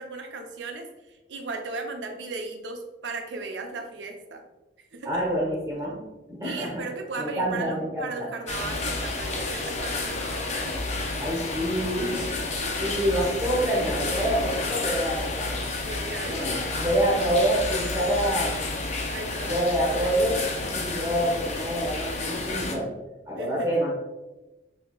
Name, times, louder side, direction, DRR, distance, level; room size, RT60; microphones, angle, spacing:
voice 1, 0.0-4.4 4.9-5.2 6.4-10.8 12.6-12.9 15.8-16.8 19.1-19.6 23.3-23.7, right 3 dB, 85° right, 4 dB, 0.6 m, -36 dB
voice 2, 5.0-6.9 7.2-8.3 11.2-15.6 16.2-18.8 19.4-22.9 23.3-23.9, right 1 dB, 15° right, -4 dB, 0.9 m, -27 dB
sound 1, 8.5-22.8, left 2 dB, 40° left, 0.6 m, -30 dB
6.1 x 2.9 x 2.3 m, 1.0 s
head